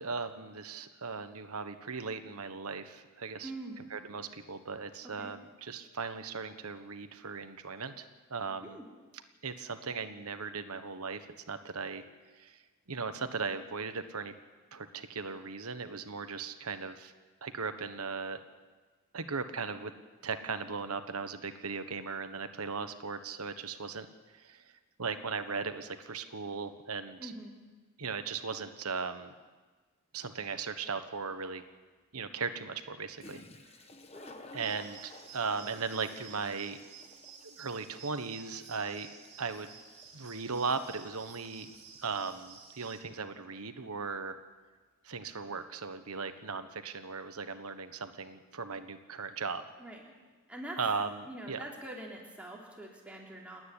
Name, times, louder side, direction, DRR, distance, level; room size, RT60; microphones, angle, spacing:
voice 1, 0.0-3.5 3.9-8.8 9.4-12.0 12.3-12.6 12.9-14.3 14.7-17.1 17.4-18.4 19.1-19.9 20.2-24.1 24.3-24.7 25.0-27.3 28.0-29.3 30.1-31.6 32.1-33.4 34.5-36.8 37.4-39.1 39.4-39.7 40.1-41.7 42.0-44.4 45.0-49.6 50.8-51.6, right 4 dB, 80° right, 9 dB, 1.3 m, -37 dB
voice 2, 3.4-3.8 5.0-5.3 8.6-8.9 27.2-27.6 34.1-34.7 49.8-50.2 50.5-50.8 51.3-53.6, right 1 dB, 5° right, -2 dB, 3.4 m, -44 dB
Toilet flush, 33.2-42.6, left 2 dB, 25° left, 1.3 m, -55 dB
sound 1, 34.6-43.0, right 6 dB, 25° right, 2.9 m, -53 dB
29.0 x 9.7 x 9.8 m, 1.3 s
head